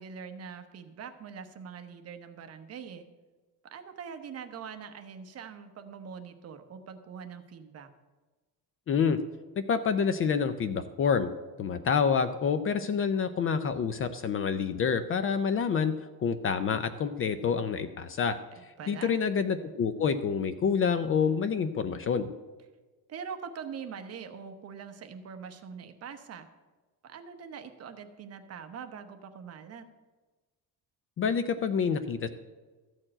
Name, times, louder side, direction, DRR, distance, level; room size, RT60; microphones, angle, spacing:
voice 1, 0.0-3.0 3.7-7.9 18.5-19.2 23.1-26.5 27.0-29.9, right 6 dB, 40° right, 7 dB, 0.9 m, -43 dB
voice 2, 8.9-9.2 9.7-11.3 11.6-22.3 31.2-32.3, left 6 dB, 35° left, 11 dB, 0.4 m, -28 dB
13.5 x 4.6 x 8.7 m, 1.3 s
cardioid pair, 170°, 38 cm